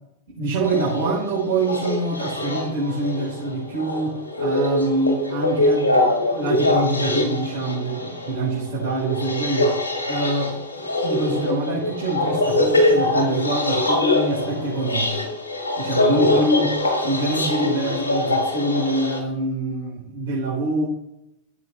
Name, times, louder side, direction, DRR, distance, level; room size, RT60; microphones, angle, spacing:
voice 1, 0.3-9.7 10.1-15.3 15.8-16.7 17.0-20.9, right 2 dB, 60° right, -7 dB, 3.7 m, -25 dB
sound 1, 0.6-19.2, left 2 dB, 75° left, 1.7 m, -23 dB
15.0 x 7.6 x 2.4 m, 0.87 s
figure-of-eight pair, 90°, 0 cm